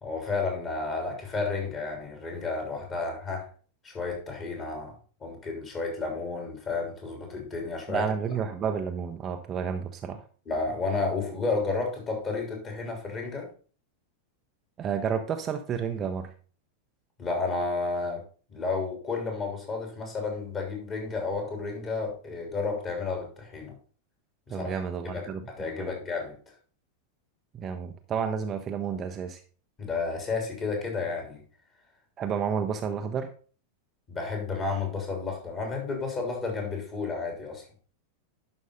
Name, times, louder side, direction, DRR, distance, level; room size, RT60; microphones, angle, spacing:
voice 1, 0.0-3.5 3.8-4.9 5.2-8.0 10.5-13.5 17.2-18.2 18.5-23.7 24.5-24.8 25.1-26.3 29.8-31.4 34.1-37.6, left 4 dB, 25° left, 1 dB, 3.4 m, -31 dB
voice 2, 7.9-10.2 14.8-16.3 24.5-25.9 27.5-29.4 32.2-33.3, right 7 dB, 25° right, 6 dB, 0.7 m, -31 dB
11.5 x 5.2 x 3.9 m, 0.40 s
figure-of-eight pair, 90°, 0 cm